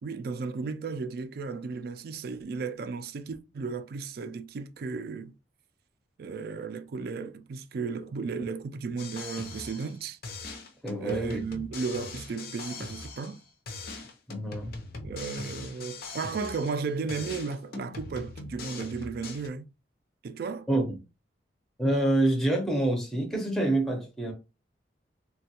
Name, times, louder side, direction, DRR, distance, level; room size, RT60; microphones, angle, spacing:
voice 1, 0.0-5.3 6.2-10.2 11.0-13.4 15.0-19.7 20.2-20.7, right 4 dB, 55° right, 0.3 m, -34 dB
sound 1, 9.0-10.0 10.2-13.4 13.7-16.8 17.1-19.5, left 3 dB, 55° left, 0.6 m, -41 dB
voice 2, 10.8-11.4 14.3-14.8 20.7-21.0 21.8-24.3, right 1 dB, ahead, 0.6 m, -27 dB
3.2 x 2.2 x 2.8 m
head